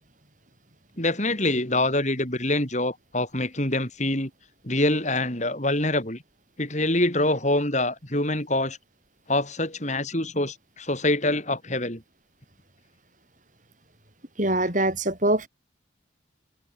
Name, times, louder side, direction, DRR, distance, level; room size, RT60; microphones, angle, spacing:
voice 1, 1.0-4.3 4.6-6.2 6.6-8.8 9.3-12.0, left 1 dB, 35° left, 6.8 m, -25 dB
voice 2, 14.4-15.5, right 1 dB, 40° right, 8.0 m, -23 dB
head